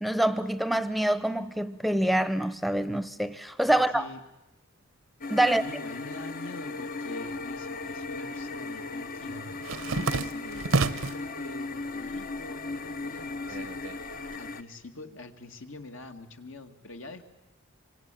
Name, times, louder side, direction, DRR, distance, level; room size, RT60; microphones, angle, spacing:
voice 1, 0.0-4.1 5.3-5.6, right 1 dB, ahead, 0.9 m, -26 dB
voice 2, 3.7-4.2 5.4-9.4 9.9-13.7 14.4-17.2, left 2 dB, 70° left, 2.2 m, -45 dB
sound 1, 5.2-14.6, left 3 dB, 45° left, 1.0 m, -37 dB
sound 2, 7.4-8.2 8.5-11.3 11.7-12.4 12.7-14.4, right 3 dB, 75° right, 1.0 m, -31 dB
26.0 x 25.0 x 9.1 m
head